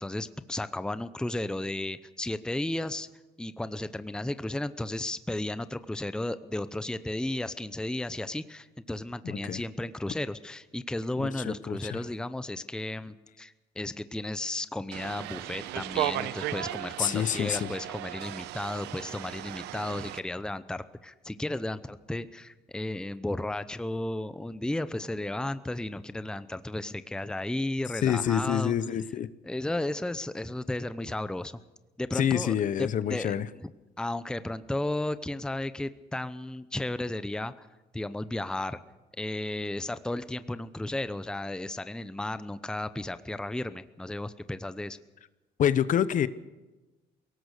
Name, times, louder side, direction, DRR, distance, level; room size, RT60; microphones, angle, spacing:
voice 1, 0.0-3.1 3.4-28.7 29.5-31.6 32.0-33.3 34.0-37.7 37.9-38.8 39.2-45.0, left 1 dB, 5° left, 13 dB, 0.7 m, -34 dB
voice 2, 9.2-9.6 11.2-12.0 17.0-17.7 28.0-29.3 32.1-33.5 45.6-46.3, left 9 dB, 50° left, 15 dB, 0.9 m, -27 dB
sound 1, 14.9-20.2, right 14 dB, 85° right, 0.9 m, -35 dB
22.0 x 18.0 x 6.6 m, 1.1 s
cardioid pair, 110°, 17 cm